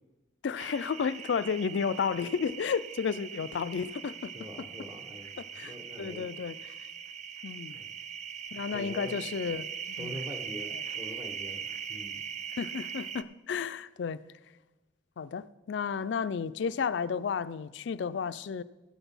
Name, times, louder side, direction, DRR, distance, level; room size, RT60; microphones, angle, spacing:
voice 1, 0.4-4.3 5.5-5.7 6.0-6.5 7.4-7.8 8.5-10.2 12.6-14.2 15.2-18.6, left 6 dB, 65° left, 0.4 m, -32 dB
sound 1, 0.6-13.2, right 7 dB, 35° right, 0.4 m, -41 dB
voice 2, 4.2-6.3 7.7-7.9 8.7-9.2 10.0-12.3, equal, 10° right, 1.1 m, -44 dB
16.0 x 6.0 x 5.4 m
head